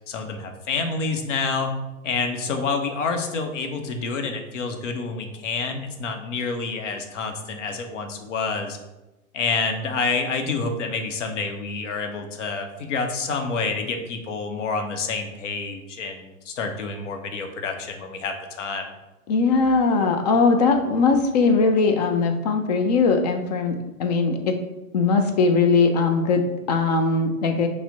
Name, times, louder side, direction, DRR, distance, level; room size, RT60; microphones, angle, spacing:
voice 1, 0.1-1.8 2.0-8.8 9.3-18.9, left 4 dB, 60° left, 5 dB, 0.8 m, -28 dB
voice 2, 19.3-24.5 24.9-26.4 26.7-27.7, left 4 dB, 30° left, 6 dB, 0.4 m, -20 dB
5.6 x 2.1 x 3.8 m, 1.0 s
figure-of-eight pair, 100°, 43 cm